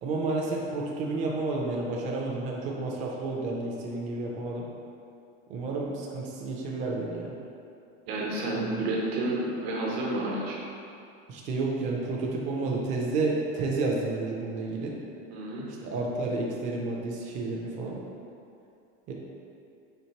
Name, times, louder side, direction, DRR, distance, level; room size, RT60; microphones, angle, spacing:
voice 1, 0.0-4.7 5.5-7.3 8.6-8.7 11.3-15.0 15.8-18.0 19.1-19.2, right 3 dB, 25° right, -2 dB, 0.4 m, -31 dB
voice 2, 8.1-10.6 15.3-15.7, right 2 dB, 85° right, -3 dB, 0.9 m, -30 dB
4.4 x 3.1 x 2.8 m, 2.6 s
cardioid pair, 170°, 30 cm